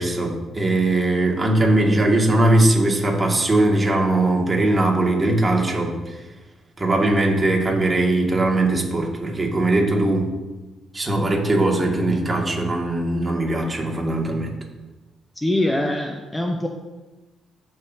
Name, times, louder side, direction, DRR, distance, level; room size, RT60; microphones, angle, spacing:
voice 1, 0.0-6.2 6.8-10.3 10.9-14.5, right 2 dB, 25° right, -1 dB, 1.9 m, -20 dB
voice 2, 15.4-16.7, left 1 dB, 15° left, 3 dB, 0.7 m, -23 dB
14.5 x 5.8 x 2.7 m, 1.1 s
cardioid pair, 90°, 0 cm